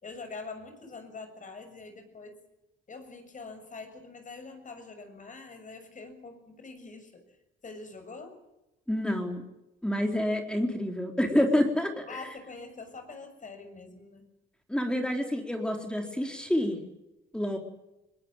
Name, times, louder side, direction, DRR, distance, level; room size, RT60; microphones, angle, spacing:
voice 1, 0.0-2.4 2.9-7.2 7.6-8.4 12.1-14.3 17.5-17.6, left 3 dB, 40° left, 7 dB, 6.8 m, -44 dB
voice 2, 8.9-9.4 9.8-12.2 14.7-16.8 17.3-17.6, left 1 dB, 5° left, 3 dB, 4.0 m, -28 dB
21.5 x 20.5 x 9.1 m, 0.94 s
cardioid pair, 90°, 20 cm